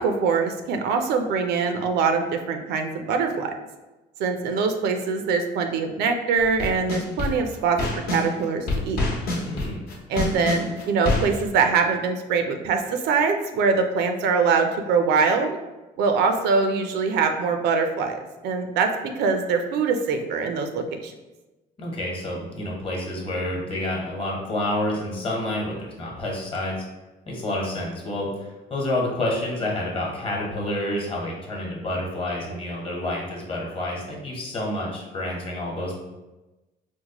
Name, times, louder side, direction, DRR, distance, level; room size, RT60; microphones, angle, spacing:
voice 1, 0.0-3.5 4.2-7.8 8.1-9.0 10.1-15.6 16.0-21.1, right 5 dB, 80° right, 6 dB, 0.4 m, -23 dB
sound 1, 6.4-8.3 8.7-11.4, left 2 dB, 70° left, 0.9 m, -26 dB
voice 2, 9.4-9.9 21.8-26.8 27.3-35.9, left 1 dB, 35° left, -2 dB, 1.1 m, -29 dB
4.4 x 2.1 x 2.9 m, 1.1 s
cardioid pair, 110°, 17 cm